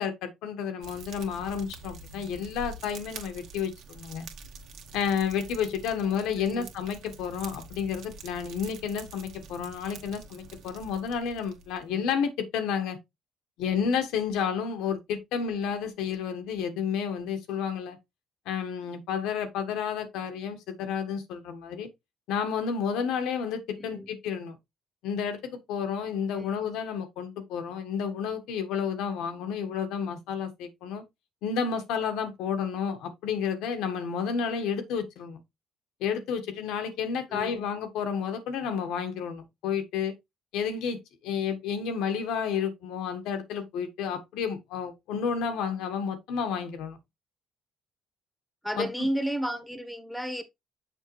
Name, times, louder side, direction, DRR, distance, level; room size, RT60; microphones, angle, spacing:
voice 1, 0.0-4.3 4.9-13.0 13.6-18.0 18.4-21.9 22.3-24.6 25.0-31.0 31.4-35.4 36.0-40.1 40.5-47.0 48.8-48.9, left 7 dB, 85° left, 1.4 m, -31 dB
Fire, 0.8-12.0, right 3 dB, 75° right, 1.7 m, -46 dB
voice 2, 6.4-6.7 23.8-24.1 26.3-26.5 37.3-37.7 48.6-50.4, equal, 5° left, 1.3 m, -32 dB
6.6 x 5.6 x 3.2 m
cardioid pair, 90°, 0 cm